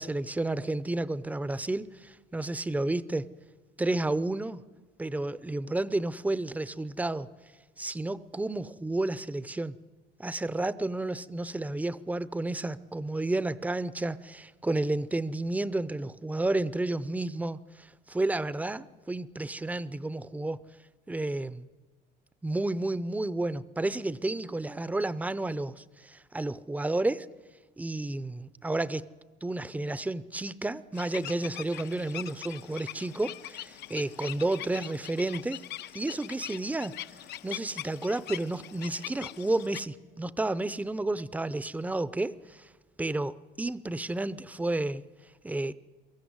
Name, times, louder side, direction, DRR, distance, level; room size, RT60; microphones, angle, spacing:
voice 1, 0.0-3.3 3.8-4.6 5.0-7.3 7.8-9.7 10.2-20.6 21.1-21.7 22.4-27.3 27.8-29.0 29.4-35.6 35.9-36.9 37.4-42.7 43.0-45.0 45.4-45.7, right 2 dB, 10° right, 17 dB, 0.6 m, -31 dB
sound 1, 30.9-39.8, left 13 dB, 60° left, 0.7 m, -42 dB
23.5 x 14.0 x 9.6 m, 1.3 s
cardioid pair, 125°, 19 cm